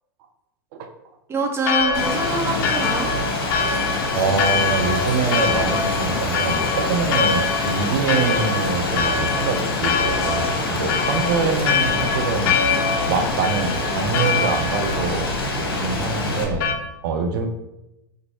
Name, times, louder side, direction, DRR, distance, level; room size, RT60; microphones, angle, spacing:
voice 1, 1.3-3.1, right 2 dB, 20° right, 2 dB, 0.7 m, -25 dB
Church bell, 1.6-16.8, left 5 dB, 50° left, 0.5 m, -25 dB
Rain, 1.9-16.4, left 2 dB, 75° left, 0.8 m, -26 dB
Tools, 4.1-11.6, left 2 dB, 30° left, 0.8 m, -38 dB
voice 2, 4.1-12.5 13.1-15.3 15.5-17.5, right 5 dB, 60° right, 6 dB, 0.6 m, -25 dB
4.3 x 2.6 x 3.0 m, 0.92 s
hypercardioid pair, 90°, 12 cm